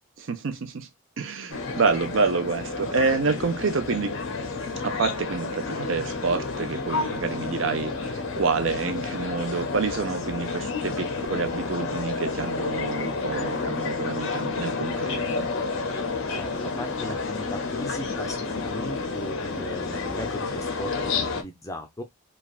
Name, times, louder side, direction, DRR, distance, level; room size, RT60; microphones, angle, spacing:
voice 1, 0.2-0.9 1.2-4.2 4.8-15.5, right 4 dB, 60° right, 0.6 m, -28 dB
sound 1, 1.5-21.4, left 4 dB, 60° left, 0.6 m, -30 dB
voice 2, 16.3-22.0, left 1 dB, 15° left, 0.5 m, -37 dB
3.2 x 2.3 x 2.3 m
head